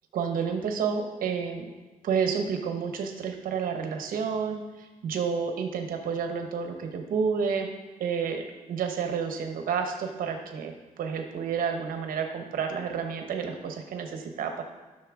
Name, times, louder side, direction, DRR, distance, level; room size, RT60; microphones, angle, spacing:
voice 1, 0.1-1.6 2.0-7.7 8.0-14.6, right 6 dB, 85° right, 5 dB, 0.9 m, -30 dB
12.0 x 6.5 x 3.6 m, 1.2 s
wide cardioid pair, 155°, 14 cm